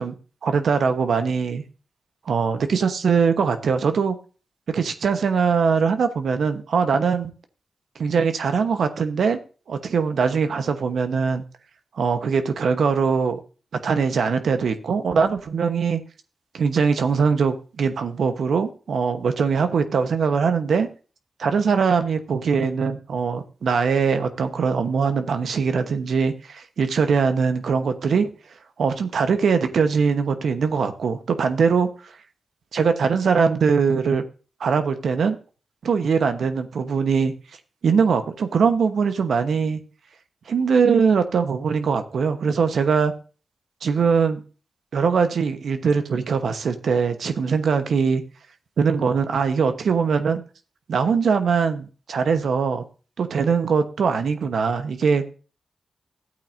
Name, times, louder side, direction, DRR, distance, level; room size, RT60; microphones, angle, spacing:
voice 1, 0.4-1.6 2.3-4.2 4.7-7.3 8.0-9.4 9.7-11.4 12.0-13.4 13.8-16.0 16.5-20.9 21.4-28.3 28.8-32.1 32.7-34.2 34.6-35.4 35.8-37.3 37.8-39.8 40.5-43.1 43.8-44.4 44.9-48.2 48.8-50.4 50.9-52.8 53.2-55.3, right 5 dB, 80° right, 8 dB, 1.0 m, -21 dB
14.0 x 8.4 x 2.6 m, 0.35 s
cardioid pair, 45°, 0 cm